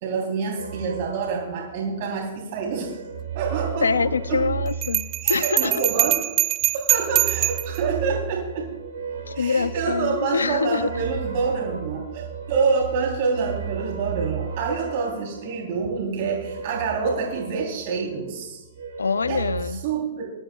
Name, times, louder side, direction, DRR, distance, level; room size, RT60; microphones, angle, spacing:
voice 1, 0.0-3.0 3.3-4.4 5.2-6.2 6.7-8.7 9.3-18.6 19.3-19.4 19.8-20.3, right 5 dB, 55° right, -1 dB, 3.2 m, -27 dB
sound 1, 0.6-2.2 2.5-6.1 6.9-18.3 18.6-19.6, right 6 dB, 80° right, 2.8 m, -35 dB
voice 2, 3.8-5.7 9.3-11.1 19.0-19.8, left 5 dB, 90° left, 17 dB, 0.5 m, -25 dB
Bell, 4.8-7.8, right 15 dB, 35° right, 0.5 m, -23 dB
21.0 x 12.0 x 2.3 m, 1.1 s
hypercardioid pair, 120°, 0 cm